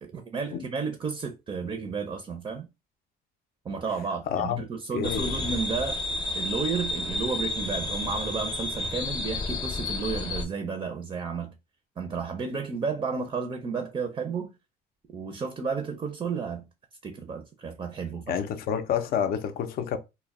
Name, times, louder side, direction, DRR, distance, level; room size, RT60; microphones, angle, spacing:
voice 1, 0.0-2.7 3.6-6.0 6.3-11.6 12.0-14.5 15.1-16.6 17.0-18.4, right 5 dB, 25° right, 0.4 m, -32 dB
voice 2, 4.3-4.6 4.9-5.3 18.3-20.0, left 8 dB, 65° left, 0.5 m, -28 dB
sound 1, 5.0-10.4, left 2 dB, 25° left, 0.7 m, -31 dB
2.1 x 2.0 x 3.5 m
cardioid pair, 110°, 17 cm